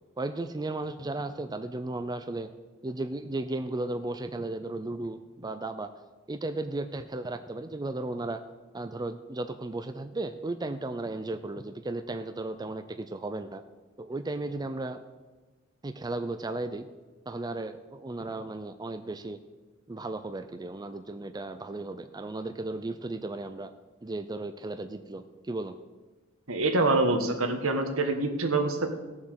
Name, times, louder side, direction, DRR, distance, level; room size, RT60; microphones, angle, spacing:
voice 1, 0.2-2.5 2.8-5.9 6.3-8.4 8.7-13.6 14.0-15.0 15.8-16.9 17.3-19.4 19.9-23.7 24.0-25.8, right 2 dB, 20° right, 9 dB, 0.5 m, -35 dB
voice 2, 26.5-28.9, right 2 dB, 75° right, 5 dB, 1.5 m, -25 dB
17.0 x 7.2 x 6.5 m, 1.3 s
head